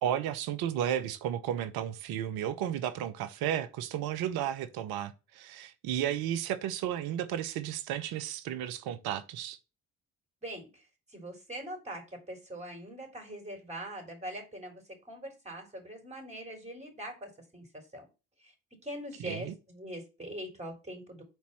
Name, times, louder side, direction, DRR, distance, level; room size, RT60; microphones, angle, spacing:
voice 1, 0.0-9.6 19.2-19.5, right 10 dB, 70° right, 0.8 m, -33 dB
voice 2, 10.4-10.8 11.1-18.1 18.4-18.5 18.8-21.2, right 1 dB, 15° right, 3.4 m, -42 dB
4.7 x 4.2 x 5.8 m
hypercardioid pair, 50°, 39 cm